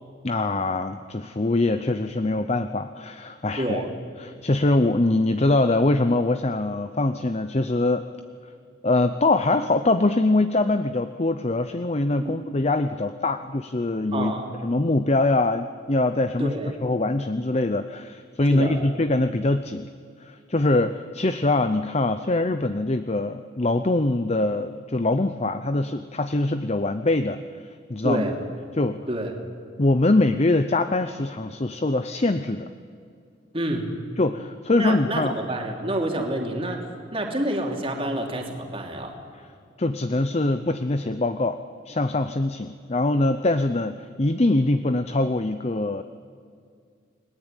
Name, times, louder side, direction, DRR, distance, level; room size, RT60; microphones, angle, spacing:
voice 1, 0.2-3.8 4.2-8.0 8.8-14.3 14.6-16.5 16.8-19.9 20.2-28.3 28.7-29.0 29.8-32.7 34.2-35.3 39.8-41.6 41.9-46.0, left 2 dB, 35° left, 10 dB, 0.7 m, -23 dB
voice 2, 3.6-3.9 12.2-12.4 14.1-14.5 16.4-16.7 18.4-18.8 28.0-28.4 29.1-29.3 33.5-33.9 34.8-36.8 37.1-39.1, right 1 dB, 30° right, 1 dB, 2.9 m, -28 dB
30.0 x 20.0 x 9.1 m, 2.2 s
head